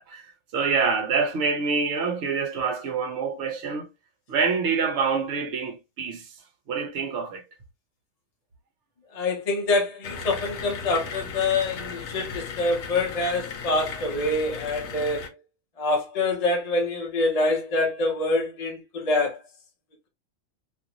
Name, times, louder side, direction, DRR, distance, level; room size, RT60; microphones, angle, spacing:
voice 1, 0.0-3.9 4.3-6.4 6.7-7.4, right 5 dB, 60° right, 1.0 m, -26 dB
voice 2, 9.1-15.2 15.8-19.4, left 2 dB, 40° left, 0.6 m, -25 dB
sound 1, 10.0-15.3, left 5 dB, 75° left, 1.0 m, -36 dB
2.6 x 2.5 x 2.7 m
omnidirectional pair, 1.4 m